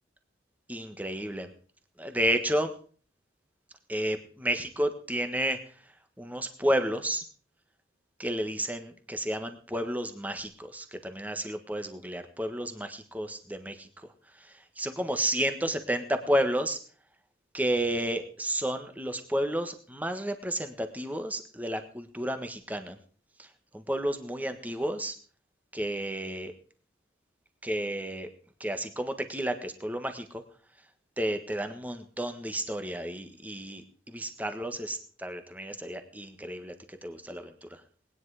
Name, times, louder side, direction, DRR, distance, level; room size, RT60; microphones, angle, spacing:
voice 1, 0.7-1.5 2.0-2.7 3.9-5.6 6.2-7.2 8.2-13.9 14.8-16.8 17.5-23.0 23.7-25.1 25.7-26.5 27.6-28.3 28.6-30.2 31.2-33.8 34.1-36.7 37.0-37.4, right 1 dB, 10° right, 8 dB, 1.4 m, -31 dB
19.5 x 10.0 x 4.9 m, 0.42 s
head